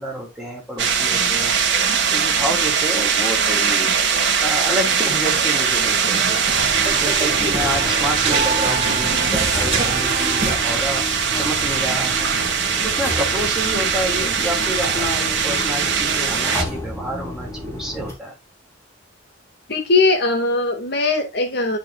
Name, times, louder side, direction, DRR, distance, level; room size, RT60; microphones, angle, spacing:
voice 1, 0.0-1.6 2.1-6.4 7.0-11.1 11.4-12.3 12.8-18.4, equal, 5° right, -1 dB, 3.5 m, -29 dB
sound 1, 0.8-16.6, right 6 dB, 70° right, 1.9 m, -21 dB
sound 2, 5.1-10.6, right 3 dB, 30° right, 1.8 m, -27 dB
sound 3, 6.6-18.1, left 1 dB, 15° left, 3.9 m, -32 dB
voice 2, 19.7-21.8, left 3 dB, 60° left, 4 dB, 2.0 m, -20 dB
12.0 x 5.3 x 2.4 m, 0.22 s
head